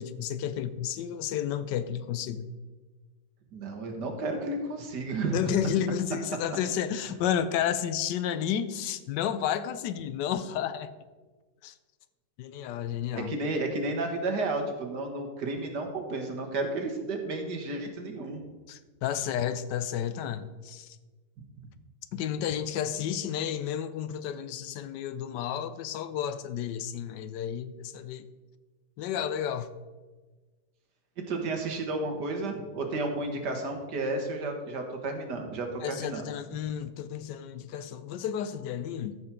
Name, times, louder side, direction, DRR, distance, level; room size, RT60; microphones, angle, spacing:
voice 1, 0.0-2.5 5.2-10.9 11.6-11.7 12.4-13.3 18.7-21.0 22.1-28.3 29.0-29.8 35.8-39.2, left 9 dB, 80° left, 1.3 m, -31 dB
voice 2, 3.5-5.4 13.2-18.4 31.3-36.2, right 2 dB, 75° right, 2.0 m, -32 dB
13.5 x 6.1 x 4.4 m
omnidirectional pair, 1.9 m